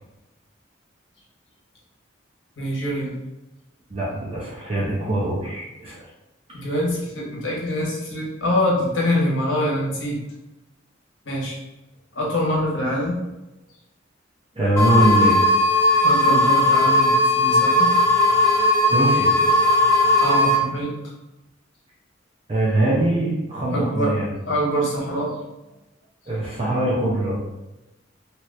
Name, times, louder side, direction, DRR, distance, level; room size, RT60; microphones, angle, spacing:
voice 1, 2.6-3.1 6.5-10.2 11.3-11.6 12.1-13.2 16.0-17.9 20.2-20.9 23.7-24.1 24.5-25.4, equal, 75° left, -3 dB, 1.0 m, -24 dB
voice 2, 3.9-5.9 14.6-15.4 18.9-19.3 22.5-24.3 26.3-27.4, right 1 dB, 30° right, -7 dB, 0.6 m, -22 dB
sound 1, 14.8-20.5, left 1 dB, 15° left, 1.0 m, -17 dB
2.9 x 2.4 x 3.2 m, 0.98 s
head